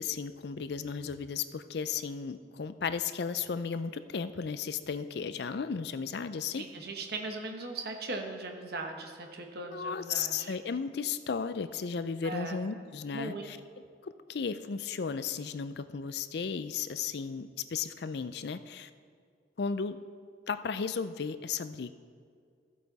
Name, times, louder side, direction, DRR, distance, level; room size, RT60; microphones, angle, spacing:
voice 1, 0.0-6.6 9.7-13.6 14.0-18.9 19.6-20.0 20.5-21.9, left 6 dB, 60° left, 12 dB, 0.4 m, -35 dB
voice 2, 6.6-10.5 12.2-12.6 13.1-13.4, right 2 dB, 55° right, 3 dB, 1.1 m, -39 dB
13.5 x 8.2 x 4.1 m, 2.3 s
head